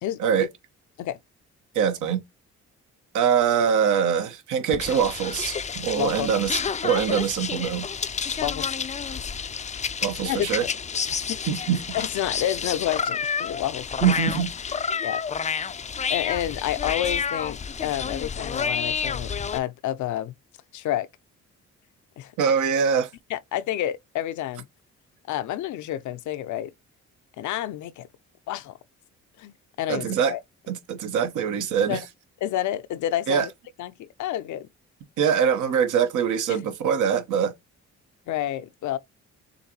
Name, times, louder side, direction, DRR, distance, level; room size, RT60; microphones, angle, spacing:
voice 1, 0.0-0.5 1.0-1.2 6.0-6.3 8.4-8.8 10.2-10.5 11.1-11.4 11.9-13.9 15.0-15.2 15.6-15.7 16.1-20.3 20.7-21.1 22.2-22.3 23.3-24.7 25.3-26.7 27.4-28.1 28.5-28.8 29.4-30.4 31.9-32.0 32.4-33.5 33.8-34.7 36.5-36.6 38.3-39.0, left 12 dB, 75° left, 0.6 m, -29 dB
voice 2, 1.7-2.2 3.1-7.9 10.0-10.6 11.5-11.8 14.0-14.5 22.4-23.1 29.9-30.3 30.7-32.0 33.3-33.5 35.2-37.5, right 7 dB, 80° right, 1.1 m, -23 dB
sound 1, 4.7-19.6, left 6 dB, 25° left, 0.4 m, -30 dB
6.7 x 2.6 x 2.9 m
cardioid pair, 90°, 30 cm